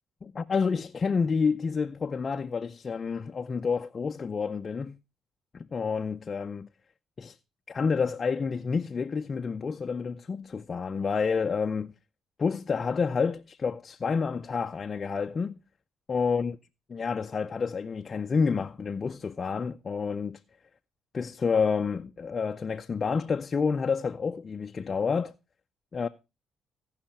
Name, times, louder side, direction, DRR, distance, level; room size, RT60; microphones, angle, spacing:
voice 1, 0.2-5.0 5.5-6.7 7.2-7.4 7.7-11.9 12.4-15.6 16.1-16.6 16.9-20.4 21.1-25.3 25.9-26.1, left 5 dB, 40° left, 0.5 m, -29 dB
16.5 x 5.7 x 4.3 m
cardioid pair, 90°, 0 cm